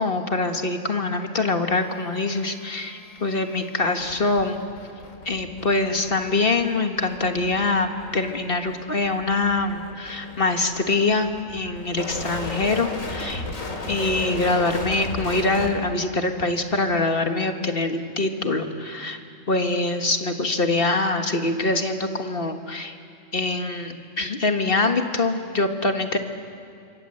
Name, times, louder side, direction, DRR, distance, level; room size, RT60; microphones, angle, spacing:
voice 1, 0.0-4.6 5.2-13.4 13.9-19.2 19.5-23.0 23.3-26.2, left 2 dB, 45° left, 5 dB, 1.7 m, -24 dB
sound 1, 1.7-15.7 16.7-16.9, left 2 dB, 85° left, 3.0 m, -36 dB
27.5 x 24.5 x 7.8 m, 2.3 s
omnidirectional pair, 1.3 m